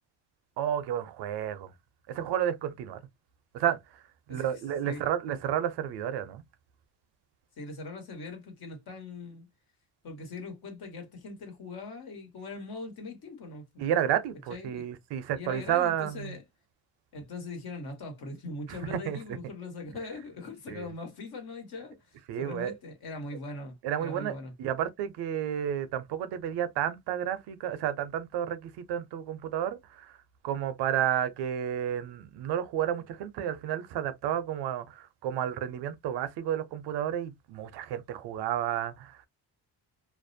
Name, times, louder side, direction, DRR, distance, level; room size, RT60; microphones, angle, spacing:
voice 1, 0.6-1.7 2.1-3.0 3.5-4.0 4.3-6.4 13.8-16.4 18.7-19.2 20.7-20.9 22.3-22.7 23.8-30.2 30.4-39.3, right 10 dB, 90° right, 0.6 m, -31 dB
voice 2, 7.6-9.5 10.0-13.8 14.5-14.9 15.4-16.4 17.1-24.5, left 3 dB, 65° left, 1.3 m, -41 dB
2.5 x 2.0 x 2.6 m
cardioid pair, 100°, 40 cm